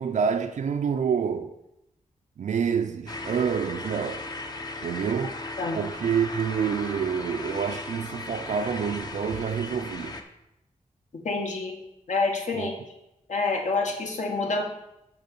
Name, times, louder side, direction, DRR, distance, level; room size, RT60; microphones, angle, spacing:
voice 1, 0.0-1.5 2.4-4.2 4.8-5.4 5.7-10.2 12.5-12.7, right 7 dB, 65° right, 0.5 m, -27 dB
sound 1, 3.1-10.2, left 2 dB, 30° left, 0.7 m, -37 dB
voice 2, 11.2-11.8 12.1-12.7 13.3-14.6, left 3 dB, 65° left, 1.6 m, -27 dB
6.7 x 5.2 x 7.0 m
wide cardioid pair, 175°, 13 cm